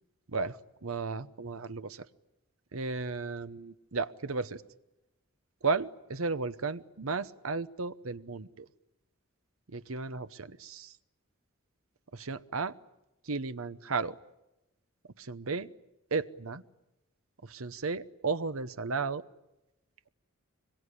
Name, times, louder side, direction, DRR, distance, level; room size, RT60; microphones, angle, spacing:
voice 1, 0.8-2.1 2.7-4.6 5.6-8.7 9.7-10.9 12.1-12.7 13.3-14.2 15.2-15.7 16.1-16.6 17.4-19.2, right 4 dB, 75° right, 13 dB, 0.9 m, -34 dB
25.0 x 22.5 x 9.8 m, 0.94 s
head